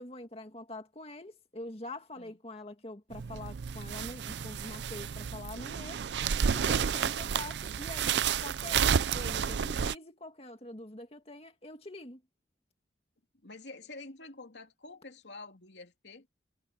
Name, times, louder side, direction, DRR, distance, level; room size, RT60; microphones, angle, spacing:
voice 1, 0.0-6.0 6.5-12.2, left 1 dB, 35° left, 2.1 m, -45 dB
sound 1, 3.1-9.9, right 7 dB, 80° right, 0.5 m, -31 dB
voice 2, 6.6-6.9 13.4-16.3, left 3 dB, 85° left, 2.7 m, -48 dB
head